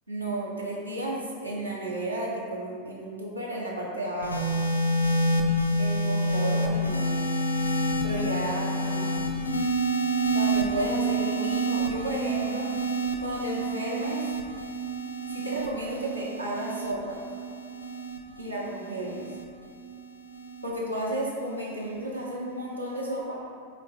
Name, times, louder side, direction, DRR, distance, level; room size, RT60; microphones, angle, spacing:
voice 1, 0.1-4.4 5.8-7.1 8.0-9.2 10.3-12.7 13.2-14.3 15.3-17.2 18.4-19.3 20.6-23.4, right 1 dB, 85° right, -5 dB, 0.8 m, -33 dB
sound 1, 4.2-20.7 21.6-22.0, right 1 dB, 80° left, 0.4 m, -28 dB
4.2 x 2.5 x 3.7 m, 2.1 s
figure-of-eight pair, 90°, 0 cm